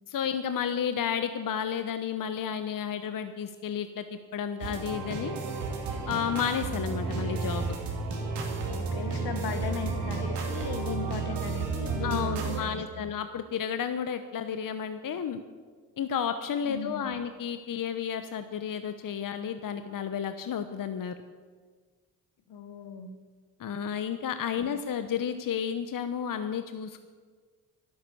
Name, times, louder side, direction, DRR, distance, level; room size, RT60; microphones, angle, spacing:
voice 1, 0.1-5.4 6.1-7.7 12.0-15.4 16.0-21.1 23.6-27.0, left 8 dB, 55° left, 10 dB, 1.0 m, -32 dB
sound 1, 4.6-12.6, right 4 dB, 80° right, 2.7 m, -32 dB
voice 2, 8.6-13.0 16.6-17.2 22.5-23.2 24.5-24.7, left 6 dB, 70° left, 9 dB, 1.5 m, -38 dB
11.5 x 11.5 x 8.4 m, 1.5 s
hypercardioid pair, 45°, 40 cm